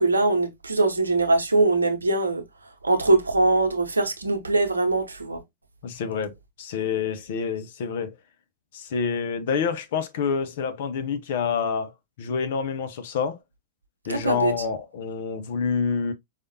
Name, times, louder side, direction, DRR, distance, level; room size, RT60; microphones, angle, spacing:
voice 1, 0.0-2.4 2.8-5.4 14.1-14.5, right 2 dB, 85° right, 0.8 m, -22 dB
voice 2, 5.8-8.1 8.7-13.4 14.1-16.1, left 6 dB, 60° left, 0.7 m, -27 dB
4.9 x 2.5 x 2.7 m
figure-of-eight pair, 95°, 0 cm